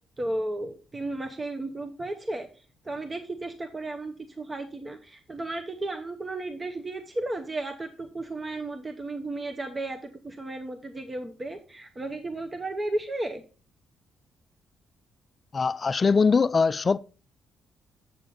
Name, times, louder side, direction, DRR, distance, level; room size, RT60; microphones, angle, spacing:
voice 1, 0.2-2.5 2.8-13.4, right 2 dB, 25° right, 0.8 m, -34 dB
voice 2, 15.5-17.0, left 5 dB, 35° left, 0.3 m, -22 dB
7.6 x 6.1 x 3.9 m
cardioid pair, 90°, 0 cm